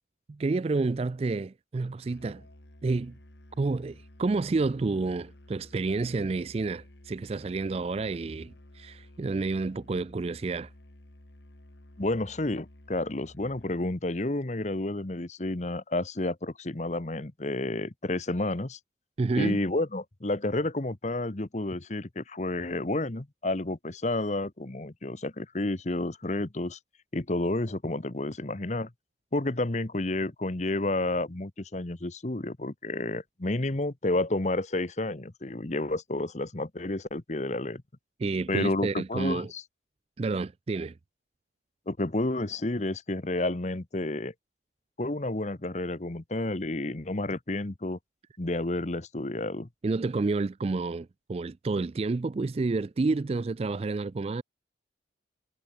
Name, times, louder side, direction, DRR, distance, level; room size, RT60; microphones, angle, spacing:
voice 1, 0.3-2.4 2.8-3.2 3.6-10.7 19.2-19.6 38.2-39.5 40.2-40.9 49.8-54.4, right 3 dB, 35° right, 0.3 m, -29 dB
Musical instrument, 2.0-13.9, left 1 dB, 70° left, 2.3 m, -53 dB
voice 2, 12.0-18.8 19.4-26.8 27.1-28.9 29.3-37.8 38.5-39.6 41.9-44.3 45.0-48.0 48.4-49.7, left 2 dB, 40° left, 1.1 m, -30 dB
head